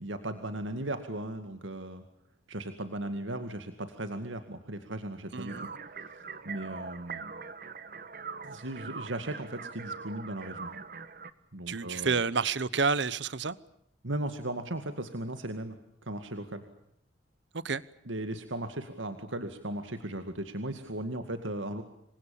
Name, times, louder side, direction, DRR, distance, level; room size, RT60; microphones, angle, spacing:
voice 1, 0.0-2.0 2.5-5.7 6.5-7.2 8.4-10.7 11.5-12.2 14.0-15.8 16.0-16.6 18.1-21.8, right 1 dB, 85° right, 2.2 m, -37 dB
voice 2, 5.3-5.7 11.7-13.6 17.5-17.8, right 5 dB, 70° right, 0.9 m, -29 dB
sound 1, 5.5-11.3, right 5 dB, 45° right, 1.4 m, -42 dB
28.0 x 24.0 x 7.1 m
head